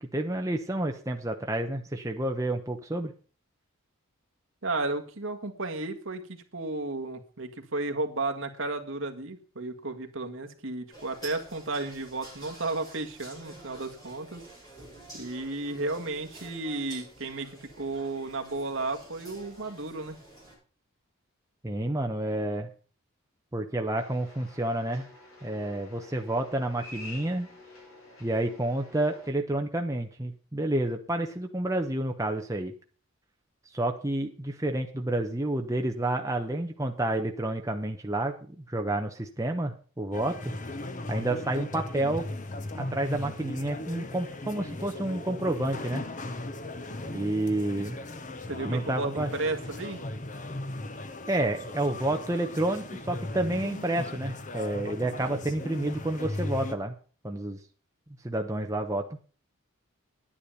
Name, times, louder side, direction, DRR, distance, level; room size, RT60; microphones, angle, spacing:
voice 1, 0.0-3.1 21.6-22.7 23.5-25.1 25.4-27.5 28.2-32.7 33.7-40.5 41.1-42.2 42.7-46.0 47.1-48.0 48.6-49.3 51.3-56.9 57.2-57.6 58.2-59.0, right 1 dB, 15° right, 3 dB, 0.9 m, -29 dB
voice 2, 4.6-14.4 15.1-20.2 48.5-50.0, right 2 dB, 65° right, 5 dB, 1.7 m, -33 dB
sound 1, 10.9-20.5, right 2 dB, 20° left, 7.9 m, -49 dB
sound 2, 24.0-29.3, left 2 dB, 70° left, 6.6 m, -49 dB
sound 3, 40.1-56.7, left 2 dB, 35° left, 1.0 m, -37 dB
10.5 x 10.0 x 5.6 m, 0.39 s
head